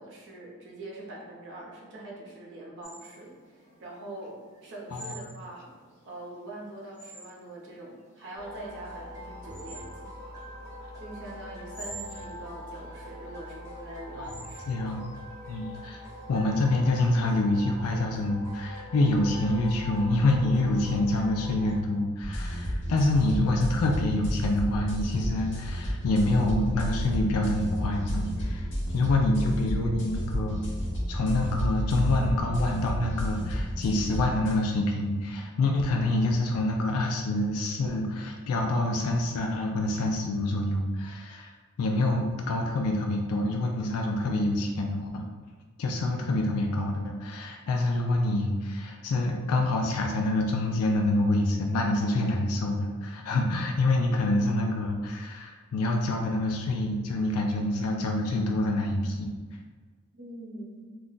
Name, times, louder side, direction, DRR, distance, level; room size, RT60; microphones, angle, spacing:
voice 1, 0.0-5.7 6.0-10.1 11.0-14.9 60.2-60.9, right 1 dB, 55° right, -3 dB, 0.8 m, -43 dB
sound 1, 2.8-16.2, right 3 dB, 35° left, 1.2 m, -49 dB
sound 2, 8.4-21.8, equal, 15° right, 1.0 m, -42 dB
voice 2, 14.7-15.0 15.5-16.0 16.3-30.6 31.1-41.5 41.8-45.2 45.8-59.3, left 2 dB, 75° left, 2 dB, 0.4 m, -26 dB
sound 3, 22.2-34.6, equal, 55° left, 0.9 m, -31 dB
2.4 x 2.2 x 3.7 m, 1.5 s
head